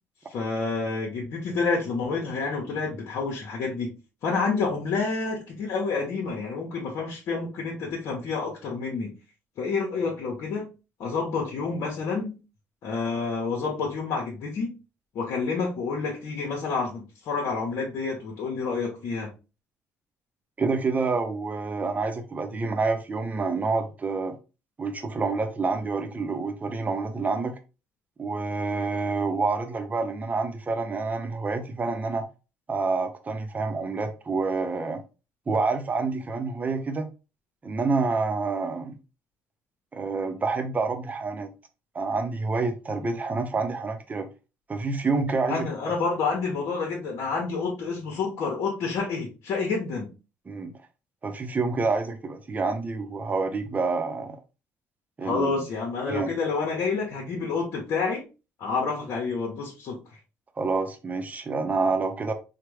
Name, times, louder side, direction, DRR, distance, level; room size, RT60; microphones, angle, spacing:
voice 1, 0.3-3.9 4.2-9.2 9.6-10.7 11.0-12.4 12.8-14.7 15.1-19.3 45.5-50.1 55.2-58.2 58.6-60.0, left 4 dB, 65° left, 0.9 m, -29 dB
voice 2, 20.6-24.4 24.8-27.5 28.2-32.3 32.7-35.0 35.5-37.1 37.6-39.0 39.9-41.5 41.9-44.3 44.7-45.7 50.5-50.7 51.2-54.4 55.2-55.6 56.1-56.3 60.6-62.3, right 4 dB, 30° right, 0.6 m, -28 dB
3.3 x 2.2 x 3.2 m
supercardioid pair, 75°, 5 cm